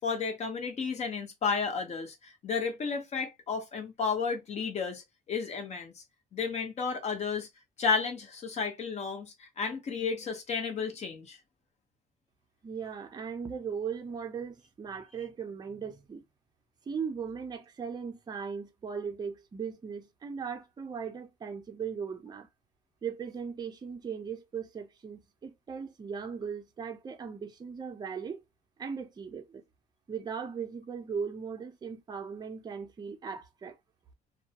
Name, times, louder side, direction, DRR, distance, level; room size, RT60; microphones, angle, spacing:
voice 1, 0.0-6.0 6.3-7.5 7.8-11.4, left 5 dB, 40° left, 0.9 m, -32 dB
voice 2, 12.6-16.2 16.9-22.5 23.0-28.4 28.8-29.6 30.1-33.8, right 6 dB, 25° right, 0.6 m, -38 dB
2.3 x 2.1 x 2.8 m
cardioid pair, 110°, 17 cm